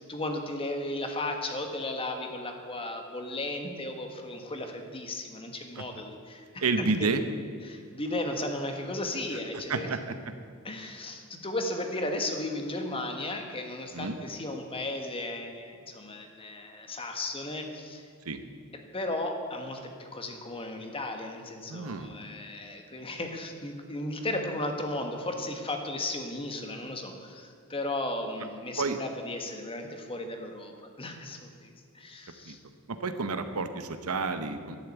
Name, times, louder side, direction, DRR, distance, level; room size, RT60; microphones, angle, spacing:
voice 1, 0.0-7.1 7.6-9.9 10.6-18.1 18.7-30.7 31.0-32.6, left 2 dB, 25° left, 4 dB, 1.5 m, -35 dB
voice 2, 6.6-7.2 9.7-10.1 13.9-14.2 18.2-18.4 21.7-22.1 28.8-29.0 32.5-32.6 32.9-34.8, right 4 dB, 80° right, 9 dB, 1.0 m, -30 dB
11.5 x 10.5 x 8.3 m, 2.1 s
head